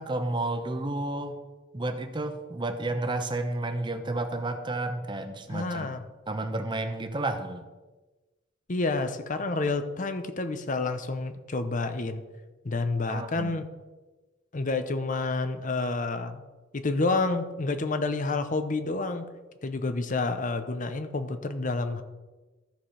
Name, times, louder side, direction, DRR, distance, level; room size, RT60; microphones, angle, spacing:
voice 1, 0.0-1.4 1.7-5.9 6.3-7.7 13.1-13.5, right 2 dB, 25° right, 6 dB, 0.9 m, -31 dB
voice 2, 5.5-6.0 8.7-12.2 12.6-13.7 14.5-16.4 16.7-19.3 19.6-22.0, left 3 dB, 40° left, 9 dB, 0.7 m, -29 dB
13.5 x 4.9 x 5.7 m, 1.2 s
head